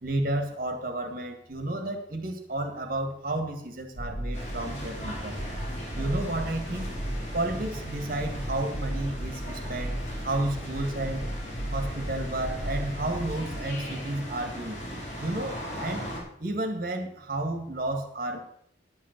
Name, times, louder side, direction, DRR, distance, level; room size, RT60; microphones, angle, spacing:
voice 1, 0.0-5.4 6.0-7.0 7.3-10.0 10.2-11.3 11.7-14.8 15.2-16.1 16.4-18.4, right 1 dB, 50° right, 5 dB, 1.9 m, -32 dB
sound 1, 3.9-13.6, right 1 dB, 70° left, 3.6 m, -36 dB
sound 2, 4.3-16.2, equal, 40° left, 4.9 m, -38 dB
11.0 x 7.4 x 6.6 m, 0.68 s
head